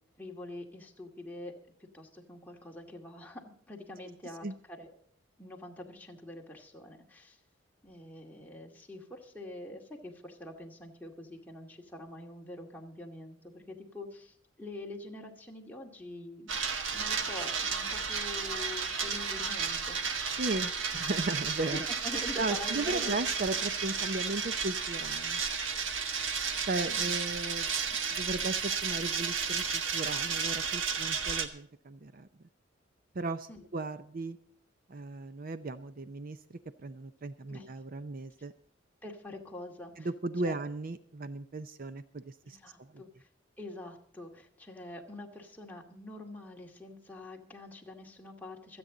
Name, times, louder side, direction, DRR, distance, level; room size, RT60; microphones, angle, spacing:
voice 1, 0.2-1.5 1.9-4.9 5.4-7.4 7.8-16.5 16.9-20.0 21.7-23.2 26.9-27.2 33.5-33.6 37.5-37.7 39.0-40.1 40.4-40.6 42.4-43.3 43.6-48.8, left 1 dB, 10° left, 0 dB, 2.2 m, -45 dB
sound 1, 16.5-31.5, right 6 dB, 80° right, 1.4 m, -33 dB
voice 2, 20.3-21.9 22.4-25.4 26.7-27.7 28.1-32.3 33.1-34.4 34.9-38.5 40.0-43.0, right 2 dB, 50° right, 12 dB, 0.6 m, -36 dB
26.0 x 8.8 x 3.9 m, 0.65 s
head